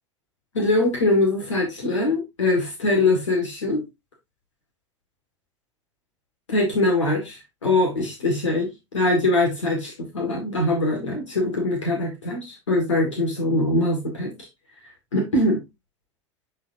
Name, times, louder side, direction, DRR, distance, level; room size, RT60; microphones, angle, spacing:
voice 1, 0.5-3.8 6.5-14.3 15.1-15.6, left 2 dB, 85° left, 2.0 m, -22 dB
8.8 x 4.1 x 2.7 m
hypercardioid pair, 80°, 15 cm